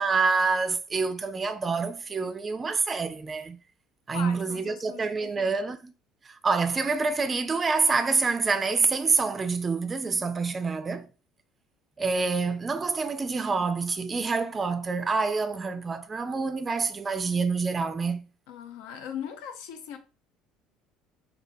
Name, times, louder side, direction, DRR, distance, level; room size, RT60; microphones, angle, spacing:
voice 1, 0.0-3.6 4.1-5.9 6.4-11.1 12.0-18.3, right 4 dB, 25° right, 0.3 m, -27 dB
voice 2, 4.1-5.6 18.5-20.0, left 8 dB, 80° left, 0.5 m, -39 dB
3.2 x 2.6 x 2.6 m
cardioid pair, 120°, 0 cm